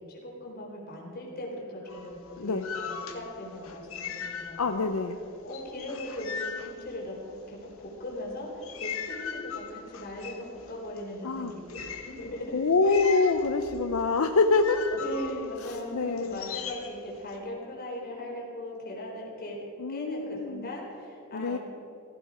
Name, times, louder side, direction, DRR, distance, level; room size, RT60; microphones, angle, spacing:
voice 1, 0.1-4.9 5.4-13.0 14.9-21.6, left 1 dB, 45° left, -2 dB, 4.1 m, -39 dB
sound 1, 1.9-5.0 5.2-7.5 8.1-17.4, left 7 dB, 70° left, 1.3 m, -40 dB
voice 2, 4.6-5.2 11.2-11.5 12.5-14.8 15.6-16.4 19.8-20.7 21.3-21.6, left 3 dB, 85° left, 7 dB, 0.7 m, -26 dB
15.5 x 15.0 x 4.9 m, 2.8 s
head